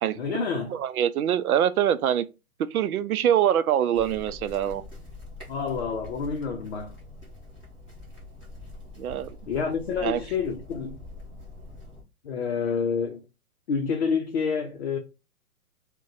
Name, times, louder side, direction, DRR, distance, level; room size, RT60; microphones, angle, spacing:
voice 1, 0.2-0.8 5.5-7.0 9.5-11.0 12.2-13.2 13.7-15.0, left 6 dB, 50° left, 0.6 m, -28 dB
voice 2, 0.7-2.2 2.7-4.8 9.0-9.3 10.0-10.2, right 10 dB, 75° right, 0.5 m, -24 dB
sound 1, 3.9-12.0, left 2 dB, 5° right, 0.5 m, -44 dB
2.5 x 2.2 x 4.0 m
hypercardioid pair, 155°, 44 cm